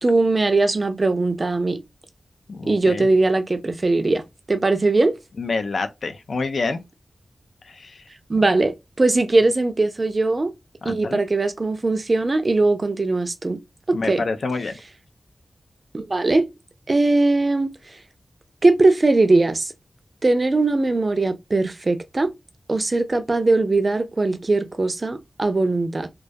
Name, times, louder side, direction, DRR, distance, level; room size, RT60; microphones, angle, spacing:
voice 1, 0.0-1.8 2.6-4.2 4.5-5.2 8.3-10.5 10.8-13.6 13.9-14.2 15.9-16.5 16.9-17.7 18.6-19.7 20.2-22.3 22.7-26.1, right 2 dB, 35° right, 0.3 m, -20 dB
voice 2, 2.5-3.1 5.4-6.8 7.6-8.0 10.8-11.2 13.9-14.8, left 3 dB, 70° left, 0.3 m, -27 dB
2.2 x 2.2 x 2.5 m
wide cardioid pair, 110°, 0 cm